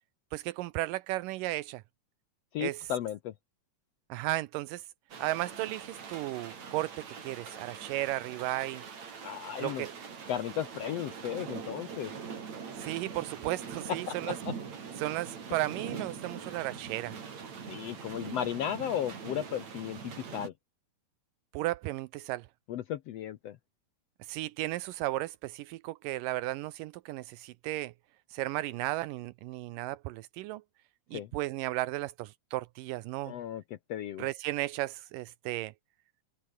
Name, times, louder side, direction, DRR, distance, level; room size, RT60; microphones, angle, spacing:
voice 1, 0.3-1.8 2.6-2.8 4.1-4.8 5.2-8.8 9.6-9.9 12.8-14.4 15.0-17.2 21.5-22.5 24.2-27.9 28.3-30.6 31.1-33.3 34.2-35.7, right 17 dB, 80° right, 2.3 m, -34 dB
voice 2, 2.5-3.3 9.2-9.9 10.3-12.1 13.9-14.5 17.7-20.5 22.7-23.6 31.1-31.3 33.3-33.6 33.9-34.3, left 10 dB, 70° left, 1.6 m, -35 dB
sound 1, 5.1-20.5, right 6 dB, 55° right, 4.5 m, -43 dB
omnidirectional pair, 3.9 m